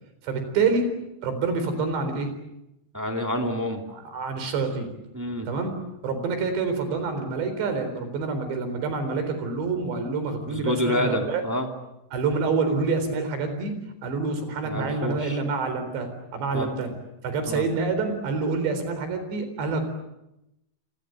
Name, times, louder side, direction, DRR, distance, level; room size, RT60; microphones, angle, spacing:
voice 1, 0.2-0.9 1.2-2.3 4.1-4.9 5.5-5.7 6.0-11.4 12.1-13.7 14.0-16.9 17.2-19.9, right 4 dB, 80° right, 8 dB, 6.3 m, -27 dB
voice 2, 2.9-3.8 5.1-5.5 10.4-11.7 14.6-15.4 16.5-16.7 17.5-17.6, left 1 dB, 5° right, 3 dB, 1.4 m, -28 dB
28.0 x 24.0 x 7.8 m, 0.90 s
omnidirectional pair, 4.9 m